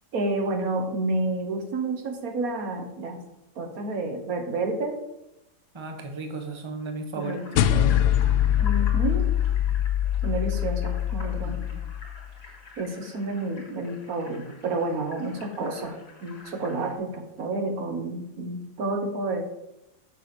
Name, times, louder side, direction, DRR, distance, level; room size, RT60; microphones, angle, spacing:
voice 1, 0.1-3.2 3.6-5.0 7.1-8.2 8.6-9.3 10.2-11.6 12.8-19.4, right 2 dB, 65° right, 6 dB, 1.4 m, -30 dB
voice 2, 5.7-7.4 11.4-11.8, right 3 dB, 20° right, 4 dB, 1.0 m, -35 dB
sound 1, 7.2-16.9, left 3 dB, 40° left, 2.5 m, -47 dB
sound 2, 7.6-12.2, left 11 dB, 85° left, 1.2 m, -23 dB
6.8 x 6.4 x 6.7 m, 0.90 s
omnidirectional pair, 1.7 m